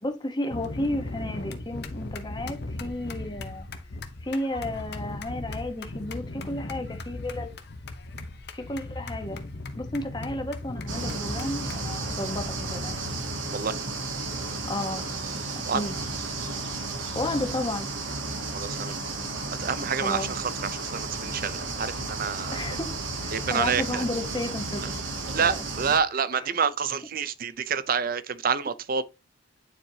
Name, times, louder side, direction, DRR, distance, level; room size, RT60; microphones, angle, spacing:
voice 1, 0.0-3.7 4.2-7.5 8.5-9.4 9.8-13.1 14.6-15.1 15.5-15.9 17.1-17.9 19.9-20.3 22.5-22.9 23.2-24.8 25.4-25.6 26.3-26.4, left 1 dB, 20° left, 1.1 m, -32 dB
sound 1, 0.5-13.2, left 2 dB, 55° left, 0.9 m, -37 dB
sound 2, 10.9-26.0, right 3 dB, 70° right, 1.3 m, -33 dB
voice 2, 18.5-18.9 19.6-22.6 23.3-24.0 24.8-24.9 25.3-29.0, right 6 dB, 45° right, 0.5 m, -28 dB
9.8 x 4.5 x 2.8 m
head